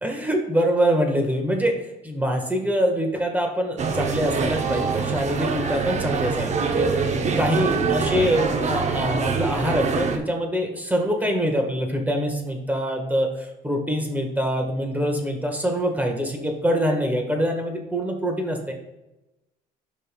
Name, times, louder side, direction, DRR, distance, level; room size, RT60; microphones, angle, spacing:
voice 1, 0.0-18.7, equal, 10° right, 3 dB, 1.4 m, -24 dB
sound 1, 3.8-10.2, right 5 dB, 40° right, 0.8 m, -24 dB
11.0 x 5.4 x 2.3 m, 0.96 s
cardioid pair, 110°, 17 cm